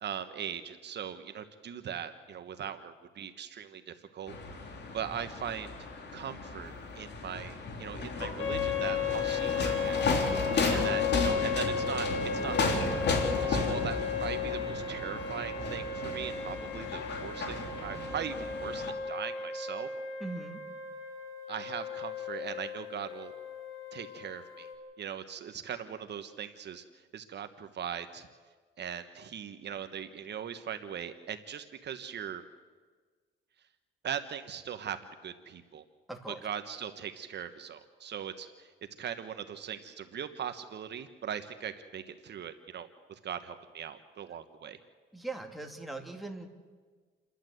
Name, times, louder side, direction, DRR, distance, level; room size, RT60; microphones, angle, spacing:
voice 1, 0.0-4.3 4.9-10.0 10.7-13.1 13.4-19.9 21.5-23.3 23.9-24.7 25.0-28.3 28.8-32.4 34.0-35.0 35.2-35.8 36.3-38.7 39.0-44.8, right 8 dB, 60° right, 9 dB, 1.2 m, -40 dB
sound 1, 4.3-18.9, left 3 dB, 60° left, 3.3 m, -34 dB
sound 2, 8.4-24.7, left 6 dB, 80° left, 3.5 m, -35 dB
voice 2, 10.6-11.0 20.2-20.6 36.1-36.4 45.1-46.5, right 2 dB, ahead, 2 dB, 2.8 m, -40 dB
29.0 x 11.5 x 7.9 m, 1.5 s
cardioid pair, 90°, 20 cm